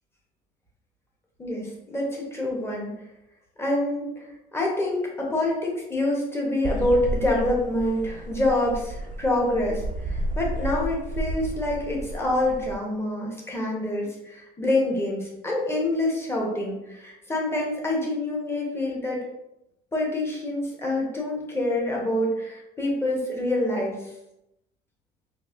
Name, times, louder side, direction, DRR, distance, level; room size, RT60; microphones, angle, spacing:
voice 1, 1.4-2.9 3.6-19.2 19.9-24.1, left 1 dB, 15° left, -2 dB, 1.0 m, -26 dB
sound 1, 6.6-12.7, right 1 dB, 50° right, 0.4 m, -32 dB
4.0 x 2.6 x 2.5 m, 0.87 s
cardioid pair, 110°, 17 cm